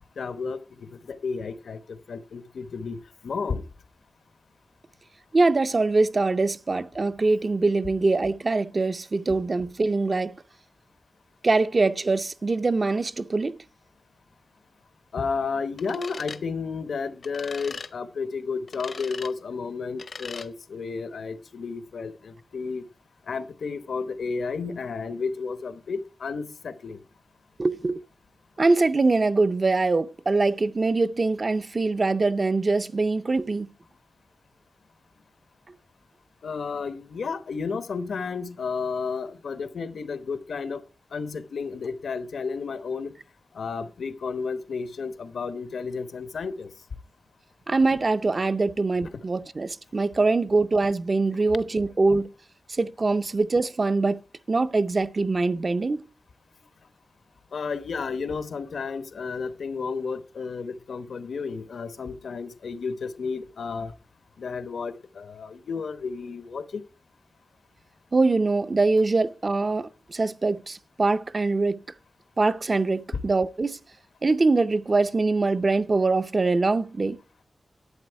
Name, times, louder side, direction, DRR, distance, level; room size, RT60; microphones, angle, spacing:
voice 1, 0.2-0.6 1.1-3.0 3.2-3.6 15.1-22.8 23.3-27.0 36.4-40.8 41.1-43.1 43.5-46.7 49.1-49.2 51.5-51.6 57.5-63.9 64.4-66.8, left 5 dB, 85° left, 1.0 m, -32 dB
voice 2, 5.3-10.4 11.4-13.6 27.6-28.0 28.6-33.7 47.7-52.3 52.7-54.2 54.5-56.0 68.1-71.8 72.4-73.8 74.2-77.2, right 3 dB, 30° right, 0.5 m, -23 dB
sound 1, 15.8-16.4 17.2-17.9 18.7-19.3 20.0-20.5, left 4 dB, 55° left, 0.7 m, -39 dB
11.5 x 8.5 x 4.6 m
wide cardioid pair, 180°, 0 cm